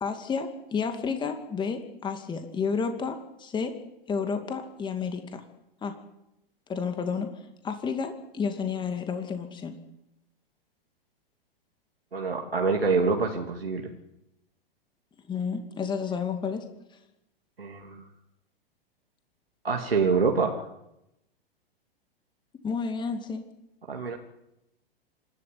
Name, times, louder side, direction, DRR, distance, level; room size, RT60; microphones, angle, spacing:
voice 1, 0.0-3.7 4.1-5.4 5.8-5.9 6.7-7.3 7.6-9.8 15.3-16.6 22.6-23.4, left 5 dB, 15° left, 6 dB, 2.4 m, -31 dB
voice 2, 12.1-13.9 17.6-18.0 19.6-20.6 23.9-24.2, right 4 dB, 80° right, 1 dB, 2.7 m, -26 dB
27.5 x 12.5 x 9.5 m, 0.88 s
figure-of-eight pair, 105°, 29 cm